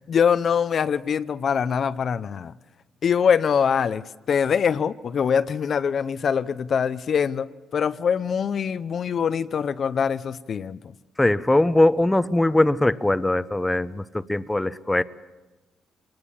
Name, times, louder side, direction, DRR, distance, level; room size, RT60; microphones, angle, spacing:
voice 1, 0.1-2.5 3.0-10.8, left 7 dB, 55° left, 0.6 m, -23 dB
voice 2, 11.2-14.0 14.3-15.0, left 1 dB, 10° left, 0.8 m, -20 dB
25.0 x 19.5 x 7.2 m
cardioid pair, 90°, 0 cm